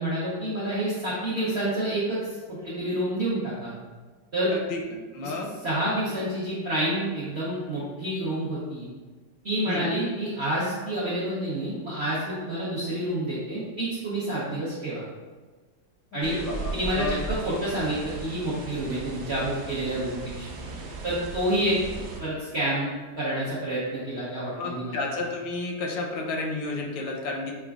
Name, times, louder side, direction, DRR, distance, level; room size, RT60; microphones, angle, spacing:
voice 1, 0.0-3.7 4.3-4.5 5.2-5.3 5.6-8.9 9.4-15.0 16.1-16.4 16.7-20.5 21.0-21.8 22.2-24.9, right 1 dB, 60° right, -9 dB, 0.7 m, -28 dB
voice 2, 5.1-5.5 9.7-9.9 16.1-17.2 24.6-27.5, left 3 dB, 85° left, 1 dB, 1.3 m, -32 dB
sound 1, 16.2-22.2, right 3 dB, 85° right, 1.3 m, -37 dB
5.9 x 2.2 x 2.3 m, 1.3 s
omnidirectional pair, 2.0 m